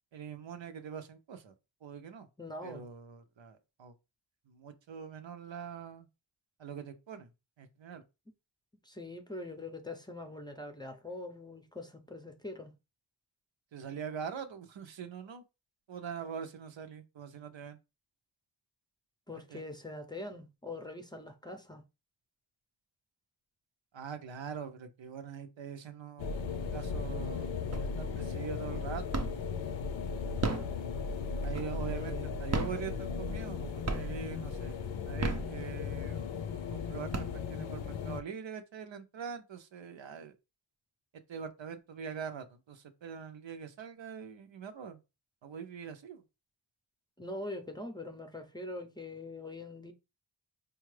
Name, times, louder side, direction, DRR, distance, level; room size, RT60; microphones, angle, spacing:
voice 1, 0.1-1.5 1.8-2.3 2.6-3.9 4.5-6.1 6.6-7.3 7.6-8.0 13.7-15.4 15.9-17.8 19.5-19.6 23.9-27.6 28.0-29.2 30.3-30.5 31.4-34.8 35.1-36.4 36.7-40.4 41.1-45.0 45.4-46.2, right 7 dB, 75° right, 0.7 m, -43 dB
voice 2, 2.4-2.8 8.8-12.7 19.3-21.8 31.9-32.3 47.2-49.9, left 2 dB, 10° left, 0.6 m, -43 dB
sound 1, 26.2-38.2, left 5 dB, 80° left, 0.6 m, -37 dB
sound 2, 27.7-28.2 28.6-29.6 30.2-32.0 32.4-33.6 33.9-34.4 35.0-36.1 36.6-36.7 36.9-37.8, right 3 dB, 35° right, 0.6 m, -35 dB
4.4 x 2.3 x 3.2 m
wide cardioid pair, 65°, 46 cm